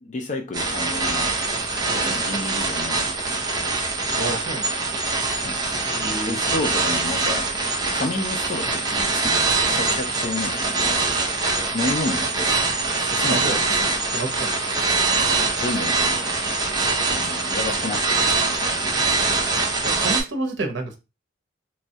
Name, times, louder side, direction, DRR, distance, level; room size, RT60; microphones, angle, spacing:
voice 1, 0.0-1.3 2.0-3.6 5.4-5.6 6.2-7.5 7.9-11.1 11.7-12.6 13.0-14.0 15.1-16.4 17.1-18.8, left 2 dB, 40° left, 0.4 m, -31 dB
sound 1, 0.5-20.2, right 3 dB, 20° right, 0.6 m, -23 dB
voice 2, 1.9-2.4 4.2-4.7 5.9-6.4 13.2-13.8 14.1-14.8 18.6-19.1 19.8-21.0, right 2 dB, 70° right, 0.7 m, -31 dB
3.0 x 2.2 x 2.7 m
head